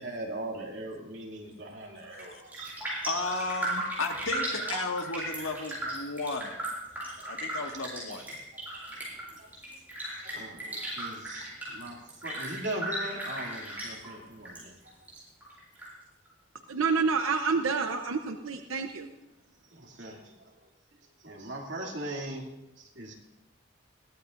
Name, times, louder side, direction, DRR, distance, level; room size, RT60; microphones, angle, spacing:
voice 1, 0.0-2.8 7.2-7.4 8.2-8.3 8.5-8.6 9.4-9.5 10.2-14.8 19.7-20.6 21.2-23.1, right 1 dB, 60° right, 0 dB, 2.5 m, -40 dB
Raindrop, 2.0-2.3 2.5-14.6 14.9-15.9 16.3-16.4, right 1 dB, 10° right, 6.9 m, -36 dB
voice 2, 3.0-6.5 7.3-8.2, left 3 dB, 85° left, 3 dB, 1.7 m, -34 dB
voice 3, 16.7-19.1, right 5 dB, 90° right, 6 dB, 0.7 m, -28 dB
21.5 x 16.0 x 2.6 m, 0.93 s
head